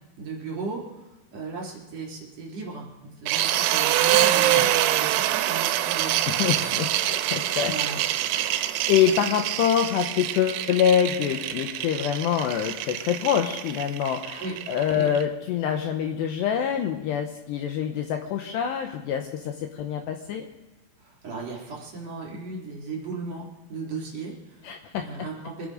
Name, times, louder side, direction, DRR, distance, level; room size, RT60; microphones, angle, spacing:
voice 1, 0.2-6.4 7.6-8.0 14.4-14.5 14.9-15.1 21.0-24.7 25.0-25.7, right 3 dB, 35° right, -3 dB, 4.2 m, -36 dB
sound 1, 3.3-15.2, right 13 dB, 85° right, 3.4 m, -25 dB
voice 2, 6.3-7.7 8.3-20.5 24.6-25.1, left 9 dB, 80° left, 5 dB, 2.5 m, -25 dB
25.5 x 10.5 x 5.1 m, 1.0 s
omnidirectional pair, 6.0 m